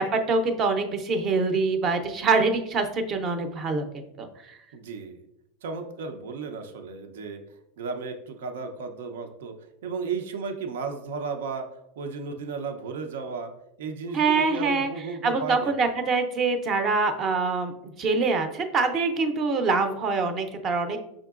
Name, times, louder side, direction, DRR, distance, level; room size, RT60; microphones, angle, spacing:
voice 1, 0.0-4.6 14.1-14.9 15.2-17.7 18.0-21.0, right 4 dB, 25° right, 7 dB, 0.5 m, -25 dB
voice 2, 4.7-5.2 5.6-7.4 7.8-9.5 9.8-11.6 12.0-13.5 13.8-15.9, right 5 dB, 90° right, 6 dB, 0.6 m, -34 dB
5.8 x 3.7 x 2.4 m, 0.83 s
supercardioid pair, 160°, 0 cm